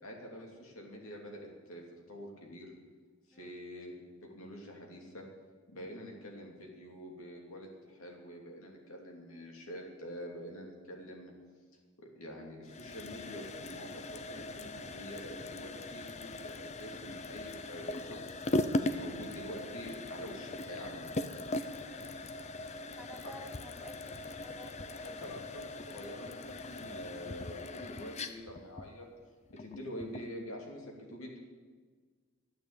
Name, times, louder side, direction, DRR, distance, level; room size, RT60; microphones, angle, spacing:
voice 1, 0.0-2.7 3.3-5.2 5.7-11.3 12.0-18.4 18.9-21.1 25.2-29.0 29.5-31.4, equal, 70° left, 0 dB, 2.9 m, -46 dB
sound 1, 12.6-30.4, left 2 dB, 30° left, 0.6 m, -40 dB
voice 2, 21.8-22.1 23.0-25.3, equal, ahead, 3 dB, 1.2 m, -53 dB
12.5 x 9.0 x 8.2 m, 1.5 s
head